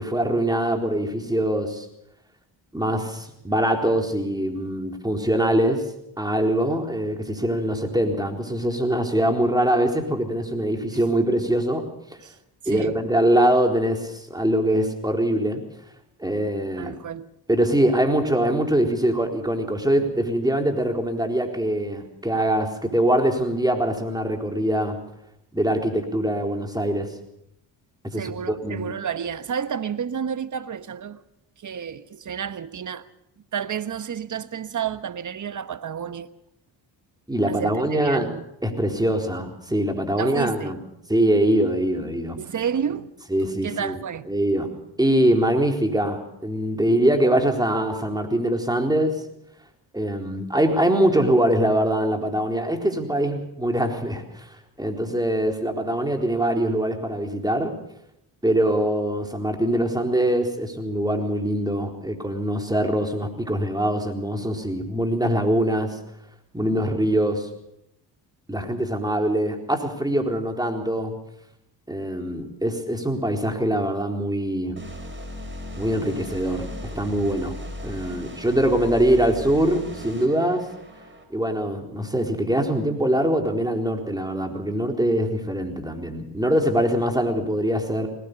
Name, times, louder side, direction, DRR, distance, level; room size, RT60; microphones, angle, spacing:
voice 1, 0.0-1.9 2.7-5.8 6.2-11.9 12.7-15.6 16.2-16.9 17.5-25.0 25.5-27.1 28.0-28.9 37.3-38.3 38.6-40.8 41.1-42.4 43.3-44.0 44.3-44.7 45.0-49.2 49.9-54.5 54.8-57.7 58.4-66.0 66.5-67.5 68.5-71.1 71.9-74.8 75.8-76.7 76.9-77.6 77.8-80.7 81.3-88.1, right 1 dB, 10° right, 4.1 m, -23 dB
voice 2, 12.6-13.0 16.8-17.3 28.1-31.2 31.6-33.1 33.5-36.3 37.5-38.4 40.2-40.8 42.4-43.1 43.6-44.3, right 7 dB, 45° right, 1.2 m, -30 dB
sound 1, 74.8-81.2, left 1 dB, 25° right, 5.4 m, -37 dB
21.0 x 19.0 x 6.8 m
cardioid pair, 70°, 43 cm